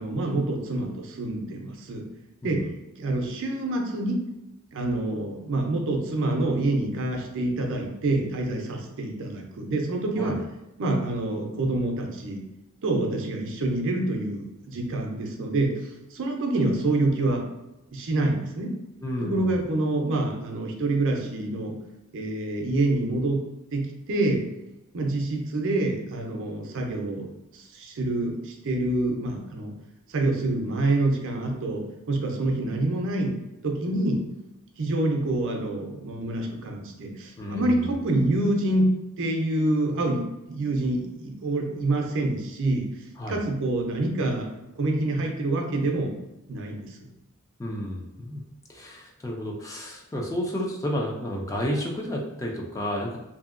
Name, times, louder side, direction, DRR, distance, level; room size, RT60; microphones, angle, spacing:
voice 1, 0.0-2.0 2.4-2.6 3.0-4.2 4.7-10.4 10.8-12.4 12.8-15.8 16.1-17.4 17.9-18.7 19.2-21.8 22.1-23.4 23.7-24.5 24.9-27.3 27.5-29.7 30.1-33.4 33.6-34.2 34.8-38.9 39.2-42.9 43.3-44.5 44.8-46.1 46.5-46.9, right 2 dB, 60° right, 1 dB, 0.5 m, -26 dB
voice 2, 19.0-19.6 37.4-38.0 43.2-43.4 47.6-48.4 48.7-53.2, equal, 15° left, 0 dB, 0.4 m, -31 dB
2.7 x 2.7 x 2.5 m, 0.94 s
head